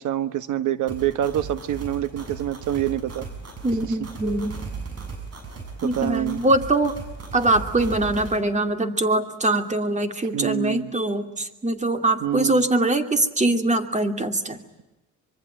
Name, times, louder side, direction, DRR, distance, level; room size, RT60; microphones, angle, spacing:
voice 1, 0.0-3.3 3.8-4.0 5.8-6.4 10.3-10.9 12.2-12.6, right 11 dB, 75° right, 13 dB, 1.5 m, -26 dB
sound 1, 0.9-8.4, right 4 dB, 55° right, 7.2 m, -37 dB
voice 2, 3.6-4.6 5.8-7.0 7.3-14.6, right 2 dB, 25° right, 7 dB, 2.7 m, -23 dB
25.5 x 23.5 x 8.9 m, 1.0 s
cardioid pair, 90°, 30 cm